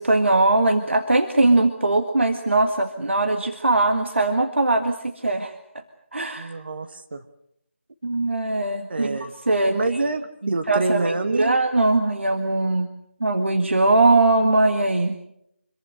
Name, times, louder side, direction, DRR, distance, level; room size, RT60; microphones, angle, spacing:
voice 1, 0.0-5.5 6.1-6.5 8.0-9.8 10.4-12.9 13.2-15.2, right 2 dB, 65° right, 6 dB, 1.9 m, -21 dB
voice 2, 6.4-7.2 8.9-9.3 9.6-11.6, right 3 dB, 50° right, 8 dB, 1.4 m, -26 dB
26.0 x 23.0 x 6.6 m, 0.77 s
figure-of-eight pair, 160°, 7 cm